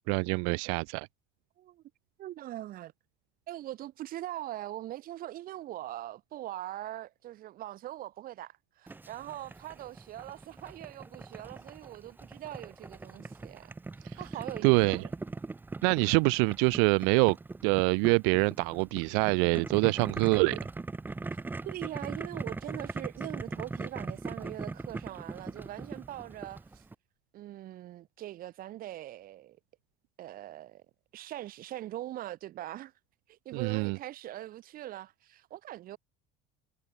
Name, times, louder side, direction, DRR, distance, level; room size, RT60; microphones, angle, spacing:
voice 1, 0.1-1.1 14.0-14.2 14.6-15.1 15.8-17.4 17.6-20.6 33.5-34.0, right 40 dB or more, 80° right, 0.9 m, -25 dB
voice 2, 2.2-2.9 3.5-15.0 21.6-26.8 27.3-29.6 30.2-30.8 31.1-32.9 33.3-36.0, right 14 dB, 45° right, 2.8 m, -42 dB
Boiling, 8.9-26.9, right 3 dB, 10° right, 0.9 m, -40 dB
cardioid pair, 160°, 21 cm